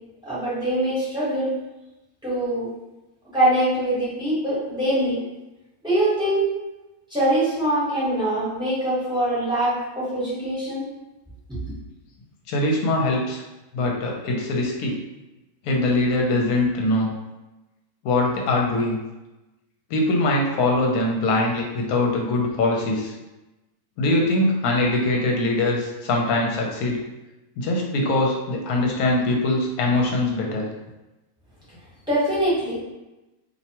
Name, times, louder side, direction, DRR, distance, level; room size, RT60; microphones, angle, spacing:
voice 1, 0.2-1.5 2.2-2.7 3.3-5.2 5.8-6.5 7.1-10.8 11.5-11.6 32.1-32.8, right 1 dB, 5° right, -10 dB, 1.0 m, -23 dB
voice 2, 12.5-13.4 13.7-15.0 15.6-17.1 18.0-19.0 19.9-23.1 24.0-27.0 27.6-30.7, left 2 dB, 70° left, -1 dB, 1.0 m, -22 dB
2.7 x 2.2 x 2.9 m, 1.0 s
omnidirectional pair, 1.7 m